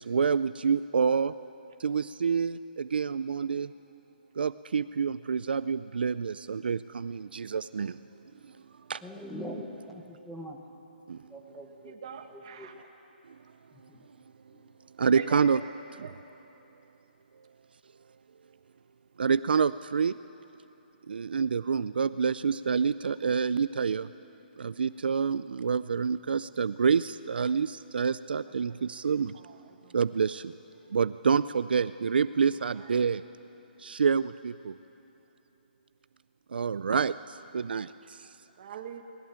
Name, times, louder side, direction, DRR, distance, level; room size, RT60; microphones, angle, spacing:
voice 1, 0.0-1.3 1.8-3.7 4.4-8.0 8.4-8.5 8.9-9.0 11.1-11.3 13.3-13.4 15.0-15.6 16.0-16.1 19.2-20.2 21.1-24.1 24.6-29.4 29.9-30.5 30.9-33.2 33.8-34.7 36.6-38.3, right 6 dB, 70° right, 15 dB, 0.5 m, -27 dB
voice 2, 9.0-10.6 11.3-12.0 12.3-12.7 13.7-14.0 14.5-14.7, equal, ahead, -1 dB, 0.9 m, -42 dB
voice 3, 11.8-12.7 15.1-15.4 16.0-16.1 28.6-28.8 29.3-30.0 32.5-33.1 38.6-39.0, right 8 dB, 30° right, 4 dB, 1.7 m, -43 dB
21.5 x 20.0 x 8.8 m, 2.9 s
hypercardioid pair, 175°, 6 cm